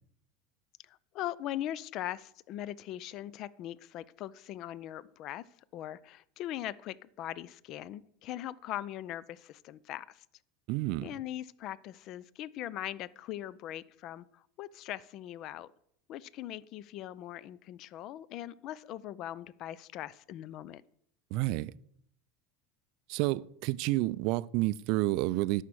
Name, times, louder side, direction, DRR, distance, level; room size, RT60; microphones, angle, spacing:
voice 1, 0.9-5.4 5.7-10.2 11.0-15.7 16.1-20.8, left 13 dB, 50° left, 0.5 m, -40 dB
voice 2, 10.7-11.1 21.3-21.7 23.1-25.6, right 18 dB, 55° right, 0.4 m, -29 dB
10.0 x 6.5 x 7.6 m
figure-of-eight pair, 75°, 0 cm